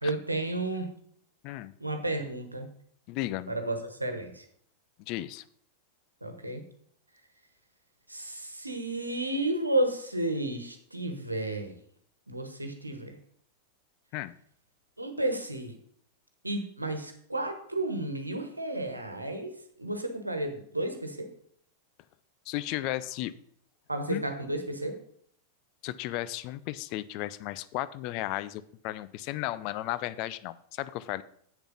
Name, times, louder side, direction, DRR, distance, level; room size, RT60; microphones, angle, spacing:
voice 1, 0.0-0.9 1.8-2.7 3.5-4.4 6.2-6.6 8.1-11.7 12.3-13.2 15.0-15.8 16.4-19.5 19.8-21.3 23.9-24.9, right 2 dB, 85° right, 7 dB, 1.3 m, -32 dB
voice 2, 3.1-3.5 5.1-5.4 14.1-14.3 22.5-23.3 24.1-24.2 25.8-31.2, left 15 dB, 45° left, 15 dB, 0.5 m, -34 dB
8.0 x 6.9 x 5.4 m, 0.64 s
figure-of-eight pair, 90°, 0 cm